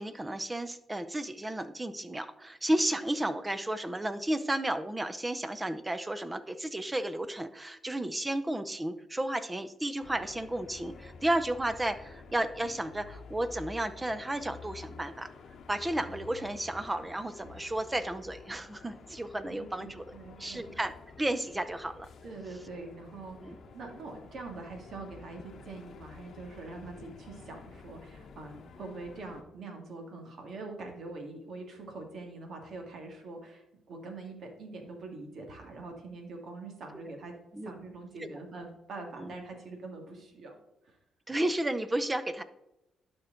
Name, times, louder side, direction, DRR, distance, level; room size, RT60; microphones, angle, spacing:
voice 1, 0.0-15.3 15.7-20.9 21.2-22.1 23.4-23.6 37.5-37.7 38.2-38.3 39.2-39.3 41.3-42.4, right 1 dB, 15° right, 12 dB, 0.6 m, -33 dB
sound 1, 10.0-29.4, left 4 dB, 60° left, 0.9 m, -50 dB
voice 2, 19.5-20.8 22.2-37.3 37.6-40.6 40.8-41.0, right 3 dB, 60° right, 3 dB, 1.9 m, -44 dB
11.5 x 4.5 x 3.8 m, 0.87 s
cardioid pair, 90°, 0 cm